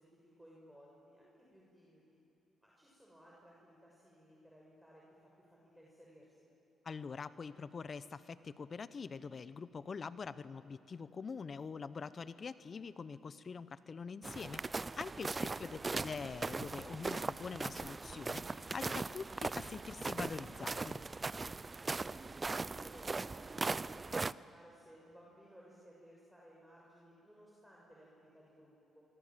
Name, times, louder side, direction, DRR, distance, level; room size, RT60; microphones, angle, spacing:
voice 1, 0.0-2.2 2.6-6.5 21.9-29.0, equal, 5° right, -4 dB, 6.6 m, -60 dB
voice 2, 6.8-21.0, left 5 dB, 50° left, 15 dB, 0.9 m, -44 dB
sound 1, 14.2-24.3, right 3 dB, 30° right, 0.5 m, -39 dB
25.0 x 24.5 x 7.6 m, 2.8 s
supercardioid pair, 55°, 0 cm